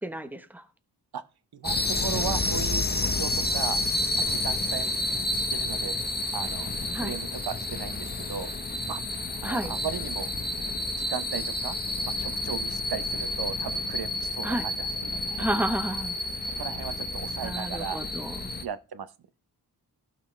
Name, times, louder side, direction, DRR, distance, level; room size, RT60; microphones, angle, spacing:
voice 1, 0.0-0.6 6.9-7.2 9.4-9.7 14.4-14.6 15.4-16.2 17.4-18.5, right 1 dB, 5° right, 0.9 m, -31 dB
voice 2, 1.5-3.8 4.1-6.0 6.3-8.5 8.9-9.0 9.4-10.3 10.9-11.8 12.0-15.5 16.6-18.0 18.6-19.1, right 7 dB, 65° right, 0.8 m, -37 dB
sound 1, 1.6-18.6, left 2 dB, 25° left, 0.9 m, -30 dB
15.5 x 6.1 x 3.2 m
wide cardioid pair, 135°, 40 cm